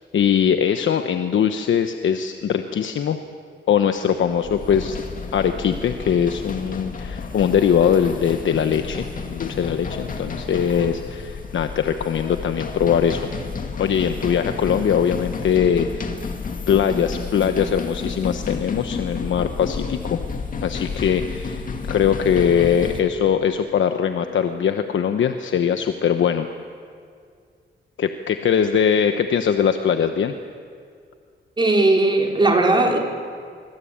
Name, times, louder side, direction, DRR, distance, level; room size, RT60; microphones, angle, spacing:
voice 1, 0.1-3.2 3.7-5.0 5.3-13.3 13.8-16.1 16.7-20.2 20.6-26.5 28.0-30.3, left 8 dB, 75° left, 7 dB, 1.1 m, -21 dB
sound 1, 4.1-23.0, left 5 dB, 45° left, 2.1 m, -31 dB
voice 2, 31.6-33.0, right 2 dB, 25° right, 1 dB, 3.7 m, -17 dB
24.5 x 24.5 x 8.8 m, 2.2 s
wide cardioid pair, 160°, 20 cm